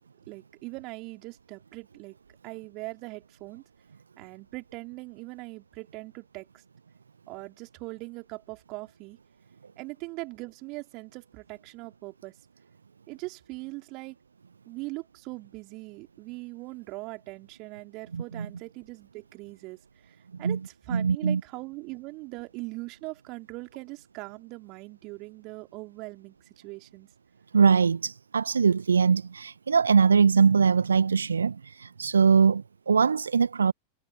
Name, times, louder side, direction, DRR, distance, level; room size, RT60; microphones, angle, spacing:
voice 1, 0.3-2.1 2.4-3.6 4.2-6.5 7.3-9.2 9.8-12.4 13.1-14.2 14.7-19.8 20.0-27.1, right 24 dB, 40° right, 3.9 m, -41 dB
voice 2, 18.1-18.5 20.4-20.6 20.9-21.4 27.5-33.7, right 5 dB, 75° right, 1.0 m, -22 dB
figure-of-eight pair, 90°, 0 cm